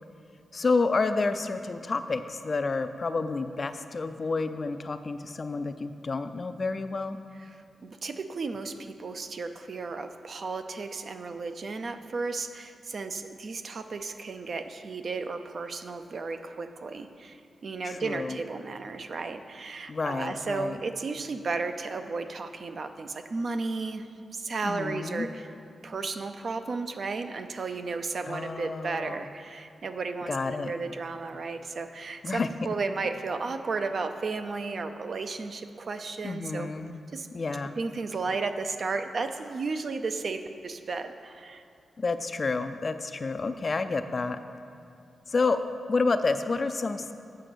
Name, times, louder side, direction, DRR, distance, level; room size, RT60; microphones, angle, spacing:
voice 1, 0.5-7.2 17.8-18.4 19.9-20.8 24.6-25.3 28.2-29.2 30.3-30.7 32.2-32.5 36.2-37.0 37.3-37.8 42.0-44.4 45.3-45.6 45.9-47.1, left 3 dB, 35° left, 10 dB, 0.3 m, -29 dB
voice 2, 7.8-24.1 24.3-25.5 25.8-36.7 37.1-37.3 37.8-41.6, right 4 dB, 50° right, 8 dB, 0.4 m, -34 dB
7.5 x 5.2 x 6.7 m, 2.5 s
wide cardioid pair, 135°, 0 cm